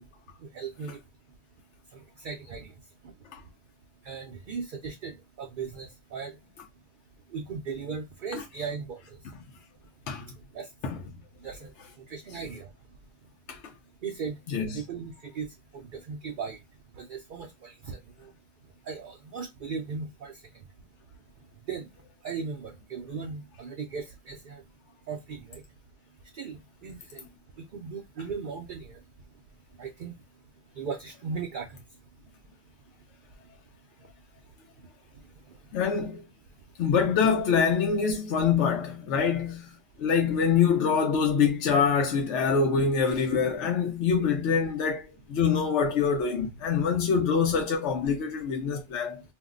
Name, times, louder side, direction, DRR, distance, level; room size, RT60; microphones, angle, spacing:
voice 1, 0.5-1.0 2.2-2.7 4.1-6.3 7.3-9.0 10.5-10.7 11.4-11.7 12.1-12.7 14.0-14.3 14.7-15.5 15.7-16.6 17.0-18.0 18.9-20.3 21.7-21.9 22.2-24.6 25.1-25.6 26.4-27.2 27.7-29.0 29.8-30.1 30.8-31.7, right 5 dB, 60° right, 0.6 m, -37 dB
voice 2, 14.5-14.8 35.7-36.2 36.8-39.7 40.0-49.2, left 6 dB, 70° left, 0.9 m, -25 dB
2.6 x 2.1 x 3.6 m
omnidirectional pair, 1.2 m